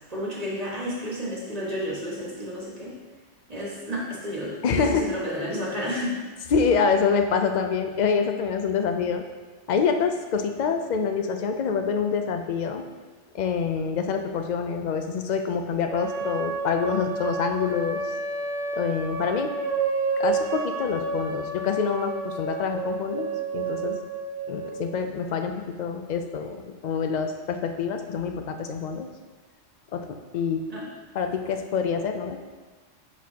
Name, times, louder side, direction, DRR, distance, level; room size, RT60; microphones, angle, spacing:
voice 1, 0.1-3.0 3.5-6.2 30.7-30.9, equal, 30° right, -5 dB, 1.5 m, -31 dB
voice 2, 4.6-5.2 6.5-9.2 9.7-12.8 13.3-18.0 18.7-19.5 20.2-24.0 24.5-29.1 29.9-30.1 30.3-30.6 31.1-32.4, left 6 dB, 60° left, 5 dB, 0.4 m, -26 dB
sound 1, 15.9-24.8, right 4 dB, 85° right, 1.3 m, -30 dB
10.5 x 4.1 x 2.8 m, 1.3 s
omnidirectional pair, 1.3 m